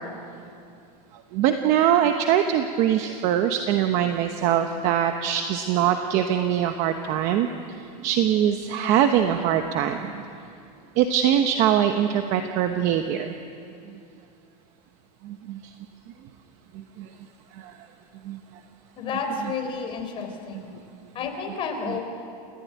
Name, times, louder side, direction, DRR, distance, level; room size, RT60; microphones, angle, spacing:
voice 1, 1.1-10.3 11.0-13.3 13.9-14.0 15.2-15.7 16.7-17.1 17.5-17.8 18.2-18.4, right 10 dB, 35° right, 6 dB, 1.1 m, -23 dB
voice 2, 19.0-20.7 21.1-22.0, left 5 dB, 25° left, 3 dB, 3.7 m, -31 dB
29.0 x 15.5 x 9.5 m, 2.5 s
supercardioid pair, 165°, 21 cm